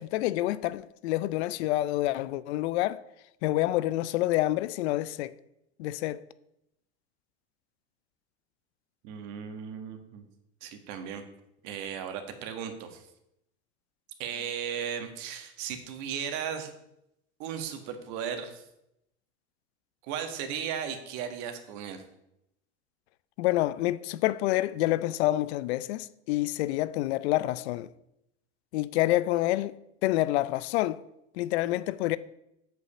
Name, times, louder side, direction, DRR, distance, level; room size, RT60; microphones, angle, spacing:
voice 1, 0.0-3.0 3.4-5.3 5.8-6.2 23.4-27.9 28.7-29.8 30.0-31.0 31.3-32.2, left 16 dB, 80° left, 0.6 m, -27 dB
voice 2, 9.0-10.3 10.6-11.2 11.6-13.0 14.2-16.7 17.4-18.6 20.0-22.0, right 8 dB, 60° right, 1.7 m, -36 dB
7.9 x 5.5 x 7.1 m
supercardioid pair, 125°, 32 cm